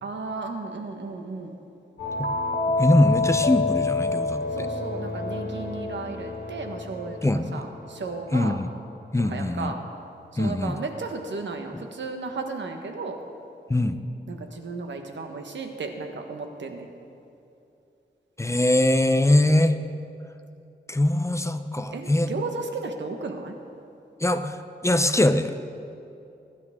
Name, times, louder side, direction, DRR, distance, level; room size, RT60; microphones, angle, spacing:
voice 1, 0.0-1.6 4.6-7.2 7.5-8.6 9.3-9.8 10.3-13.2 14.3-16.9 21.9-23.5, right 3 dB, 85° right, 4 dB, 1.4 m, -34 dB
sound 1, 2.0-8.5, left 3 dB, 65° left, 2.2 m, -28 dB
voice 2, 2.8-4.7 7.2-7.6 8.3-8.7 9.1-9.7 10.4-10.8 13.7-14.0 18.4-19.8 20.9-22.3 24.2-25.7, left 1 dB, 15° left, 9 dB, 0.7 m, -22 dB
22.0 x 11.5 x 3.7 m, 2.6 s
wide cardioid pair, 95°, 18 cm